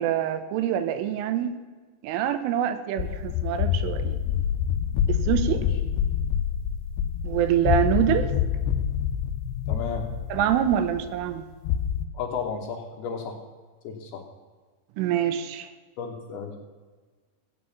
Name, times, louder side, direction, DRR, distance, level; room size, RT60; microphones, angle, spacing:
voice 1, 0.0-1.6 2.0-4.2 5.1-5.6 7.2-8.3 10.3-11.4 15.0-15.7, right 10 dB, 85° right, 10 dB, 3.5 m, -25 dB
sound 1, 3.0-12.1, left 9 dB, 90° left, 2.4 m, -27 dB
voice 2, 9.7-10.1 12.1-13.4 13.8-14.2 16.0-16.6, left 6 dB, 70° left, 2 dB, 2.6 m, -33 dB
15.5 x 8.7 x 7.1 m, 1.4 s
omnidirectional pair, 5.6 m